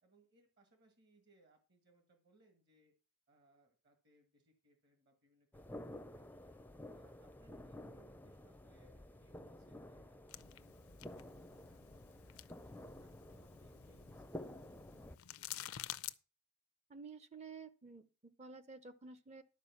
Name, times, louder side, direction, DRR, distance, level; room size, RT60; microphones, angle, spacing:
voice 1, 0.0-2.9 3.3-6.6 7.0-14.6 15.3-15.7, right 2 dB, 50° right, 4 dB, 1.7 m, -71 dB
sound 1, 5.5-15.2, left 1 dB, 10° left, 0.5 m, -52 dB
sound 2, 10.3-16.1, left 13 dB, 80° left, 0.5 m, -51 dB
voice 2, 16.9-19.4, right 4 dB, 30° right, 12 dB, 0.7 m, -52 dB
11.5 x 4.9 x 7.1 m, 0.34 s
head